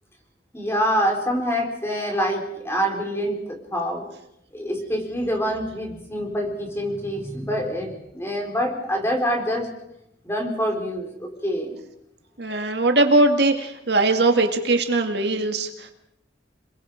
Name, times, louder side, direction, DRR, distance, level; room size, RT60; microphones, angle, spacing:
voice 1, 0.5-4.1 4.5-9.7 10.2-11.7, equal, 15° left, 2 dB, 4.5 m, -26 dB
voice 2, 12.4-15.9, right 2 dB, 65° right, 5 dB, 2.1 m, -20 dB
28.0 x 22.0 x 5.0 m, 0.81 s
head